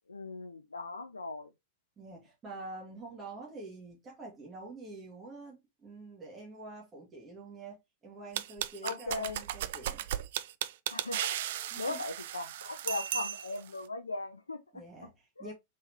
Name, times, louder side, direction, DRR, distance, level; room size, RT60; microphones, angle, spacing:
voice 1, 0.1-1.5 8.8-9.4 10.9-11.4 11.8-15.1 15.4-15.5, left 3 dB, 85° left, 0.4 m, -38 dB
voice 2, 2.0-10.1 11.7-12.0 14.7-15.5, right 2 dB, 25° right, 1.7 m, -47 dB
sound 1, 8.3-13.7, right 11 dB, 60° right, 0.4 m, -36 dB
4.2 x 3.6 x 2.9 m
figure-of-eight pair, 90°, 0 cm